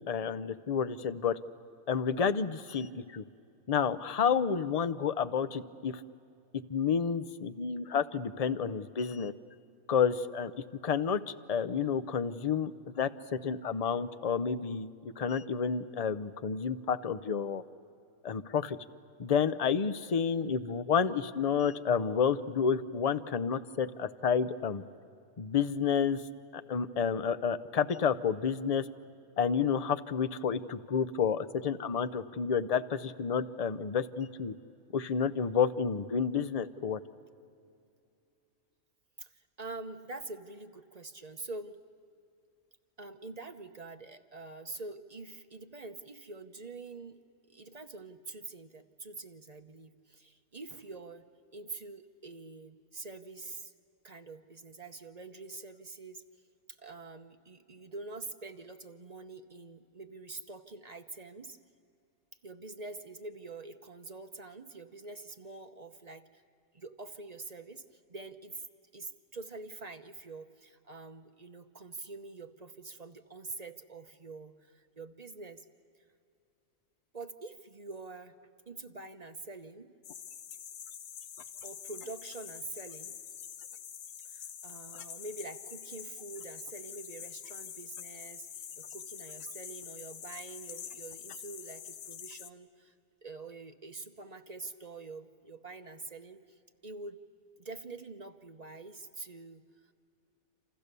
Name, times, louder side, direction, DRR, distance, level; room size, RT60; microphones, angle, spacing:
voice 1, 0.0-1.4 1.9-3.2 3.7-6.0 6.7-9.3 9.9-10.5 10.8-12.7 13.0-17.6 18.2-18.8 19.2-24.8 25.4-26.2 26.5-28.8 29.4-34.5 34.9-37.0, left 6 dB, 40° left, 13 dB, 0.6 m, -30 dB
voice 2, 39.2-41.8 43.0-47.2 47.5-51.2 51.5-53.7 54.0-56.2 56.7-61.6 62.4-66.4 66.7-68.7 68.9-75.7 77.1-78.3 78.7-79.9 81.6-83.2 84.3-92.9 93.2-96.4 96.8-97.2 97.6-99.6, right 3 dB, 35° right, 7 dB, 0.9 m, -45 dB
sound 1, 80.0-92.5, left 8 dB, 80° left, 1.2 m, -45 dB
28.0 x 28.0 x 6.8 m, 2.5 s
omnidirectional pair, 1.3 m